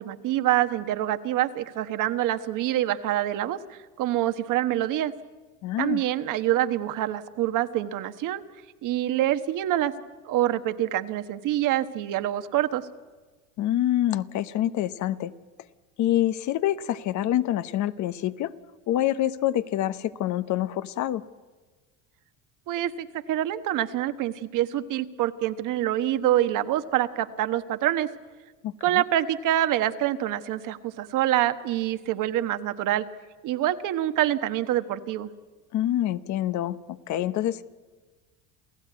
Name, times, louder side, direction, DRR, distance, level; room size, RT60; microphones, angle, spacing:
voice 1, 0.0-5.1 5.8-8.4 8.8-9.9 10.2-12.8 22.7-28.1 28.8-33.0 33.4-35.3, right 13 dB, 55° right, 10 dB, 1.3 m, -26 dB
voice 2, 5.6-6.0 13.6-15.3 16.0-18.5 18.9-21.2 28.6-29.0 35.7-37.6, left 12 dB, 50° left, 13 dB, 1.0 m, -26 dB
28.5 x 15.5 x 9.5 m, 1.3 s
supercardioid pair, 115°, 38 cm